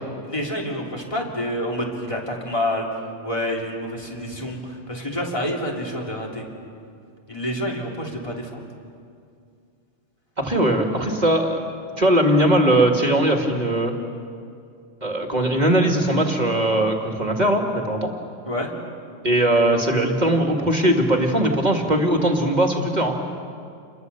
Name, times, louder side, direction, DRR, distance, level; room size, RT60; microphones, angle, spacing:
voice 1, 0.2-2.9 3.2-6.4 7.3-8.6 18.4-18.7, left 1 dB, 25° left, -1 dB, 3.2 m, -28 dB
voice 2, 10.4-11.6 12.0-13.9 15.0-18.1 19.2-23.4, right 1 dB, 35° right, 2 dB, 2.1 m, -20 dB
29.0 x 22.5 x 6.9 m, 2.4 s
omnidirectional pair, 1.3 m